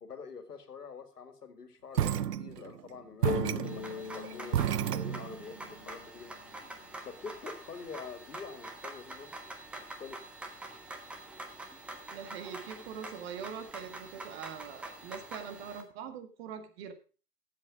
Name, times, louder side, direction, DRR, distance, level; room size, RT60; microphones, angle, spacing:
voice 1, 0.0-6.3 7.0-9.3 9.8-10.2, left 5 dB, 75° left, 9 dB, 2.0 m, -46 dB
sound 1, 1.9-2.8 3.2-5.6, right 10 dB, 80° right, 0.6 m, -31 dB
sound 2, 3.2-6.9, left 6 dB, 50° left, 0.9 m, -40 dB
sound 3, 3.6-15.8, right 2 dB, 5° right, 0.6 m, -46 dB
voice 2, 12.1-16.9, right 7 dB, 40° right, 8 dB, 1.8 m, -43 dB
12.0 x 7.7 x 4.9 m, 0.36 s
figure-of-eight pair, 120°, 47 cm